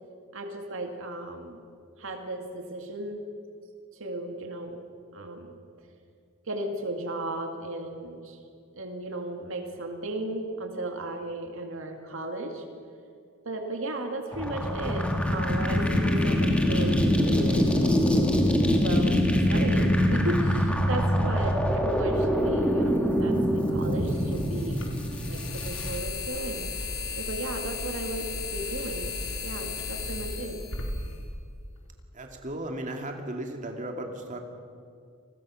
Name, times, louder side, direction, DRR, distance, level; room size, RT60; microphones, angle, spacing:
voice 1, 0.3-1.7 2.0-3.2 3.9-4.8 5.1-5.5 6.5-8.4 8.7-12.7 13.4-18.0 18.7-24.8 25.3-26.7 27.1-30.6, right 1 dB, 60° right, 4 dB, 2.2 m, -35 dB
sound 1, 14.3-26.0, equal, 5° left, 2.4 m, -24 dB
sound 2, 22.5-22.6 23.9-31.9, left 4 dB, 65° left, 4.4 m, -35 dB
voice 2, 32.1-34.4, right 1 dB, 35° right, 3 dB, 2.5 m, -35 dB
29.0 x 21.0 x 6.4 m, 2.3 s
head